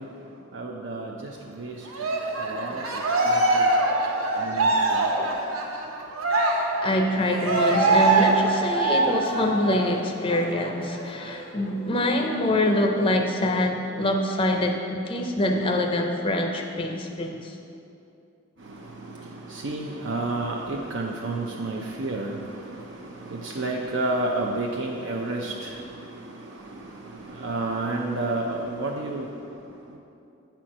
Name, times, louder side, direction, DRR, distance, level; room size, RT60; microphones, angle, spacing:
voice 1, 0.0-3.7 4.3-5.1 18.6-30.0, right 2 dB, 60° right, -1 dB, 0.5 m, -32 dB
Cheering, 1.9-9.9 10.3-10.5 10.8-11.8, right 2 dB, 80° right, 0.9 m, -23 dB
voice 2, 6.8-17.6, left 1 dB, 25° left, 3 dB, 0.5 m, -25 dB
8.8 x 4.4 x 6.2 m, 2.6 s
head